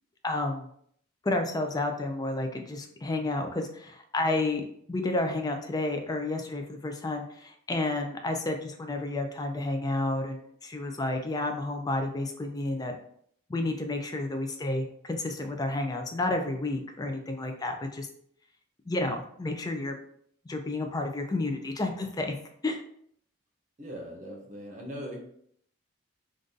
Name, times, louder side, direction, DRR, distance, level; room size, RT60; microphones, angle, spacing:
voice 1, 0.2-0.7 1.2-4.6 4.9-12.9 13.5-18.1 18.9-20.0 20.5-22.4 22.6-22.8, left 2 dB, 20° left, 4 dB, 0.3 m, -31 dB
voice 2, 23.8-25.2, equal, 35° right, -1 dB, 0.7 m, -40 dB
2.6 x 2.4 x 3.7 m, 0.66 s
head